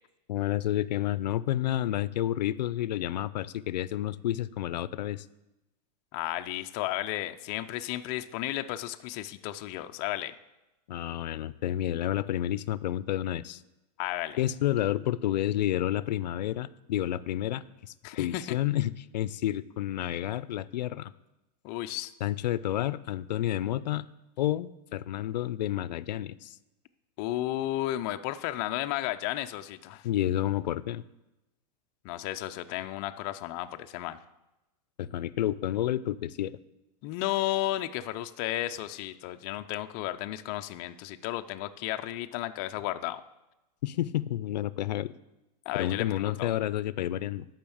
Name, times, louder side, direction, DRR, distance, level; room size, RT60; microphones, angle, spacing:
voice 1, 0.3-5.3 10.9-13.6 14.4-21.1 22.2-24.1 24.4-26.6 30.0-31.0 35.0-36.6 43.8-45.1 45.7-47.5, left 12 dB, 85° left, 18 dB, 0.5 m, -30 dB
voice 2, 6.1-10.3 14.0-14.4 18.0-18.6 21.6-22.1 27.2-30.1 32.0-34.2 37.0-43.2 45.7-46.5, left 14 dB, 30° left, 7 dB, 0.4 m, -33 dB
10.5 x 5.6 x 7.0 m, 0.98 s
supercardioid pair, 155°, 21 cm